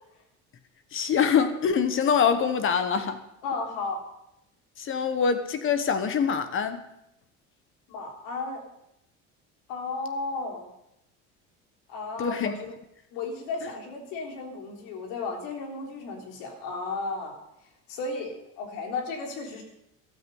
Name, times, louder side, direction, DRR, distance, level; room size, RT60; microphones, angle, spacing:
voice 1, 0.9-3.2 4.8-6.8 12.2-12.6, left 6 dB, 40° left, 1.2 m, -24 dB
voice 2, 3.4-4.0 7.9-8.6 9.7-10.7 11.9-12.7 13.1-17.3 17.9-19.6, left 3 dB, 85° left, 3.7 m, -34 dB
14.0 x 13.0 x 5.4 m
cardioid pair, 130°, 31 cm